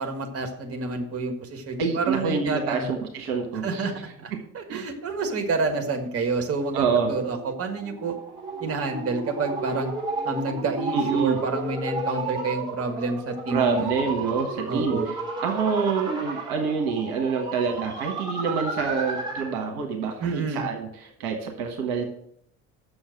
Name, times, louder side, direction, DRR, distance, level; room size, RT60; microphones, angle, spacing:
voice 1, 0.0-2.9 3.6-8.2 8.6-9.9 10.2-13.9 14.6-15.1 20.2-20.6, right 3 dB, 30° right, 4 dB, 1.6 m, -29 dB
voice 2, 1.8-3.9 4.7-4.9 6.7-7.1 10.9-11.4 13.5-15.2 15.4-22.1, right 5 dB, 55° right, 3 dB, 1.5 m, -26 dB
sound 1, 7.1-19.6, right 3 dB, 10° right, 3.6 m, -33 dB
7.0 x 6.5 x 7.6 m, 0.72 s
figure-of-eight pair, 60°, 45 cm